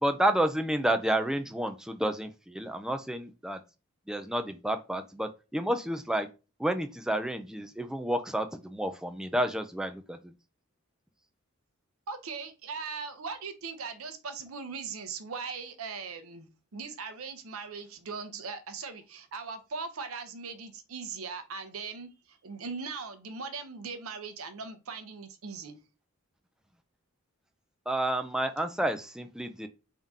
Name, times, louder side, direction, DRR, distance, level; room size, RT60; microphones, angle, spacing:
voice 1, 0.0-3.6 4.1-6.3 6.6-10.3 27.9-29.7, right 1 dB, 5° right, 7 dB, 0.4 m, -30 dB
voice 2, 12.1-25.8, right 5 dB, 80° right, 9 dB, 0.7 m, -39 dB
3.6 x 2.8 x 3.6 m, 0.29 s
head